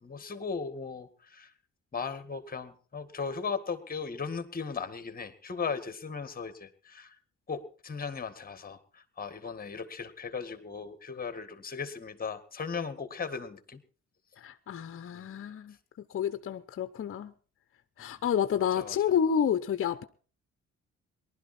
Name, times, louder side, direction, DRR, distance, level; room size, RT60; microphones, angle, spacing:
voice 1, 0.0-1.5 1.9-7.2 7.5-13.8 15.1-15.3 18.0-18.2 18.8-19.0, left 5 dB, 30° left, 1.8 m, -37 dB
voice 2, 14.4-15.7 16.1-17.3 18.0-20.0, left 8 dB, 45° left, 0.8 m, -29 dB
19.0 x 12.0 x 4.2 m
cardioid pair, 90°, 30 cm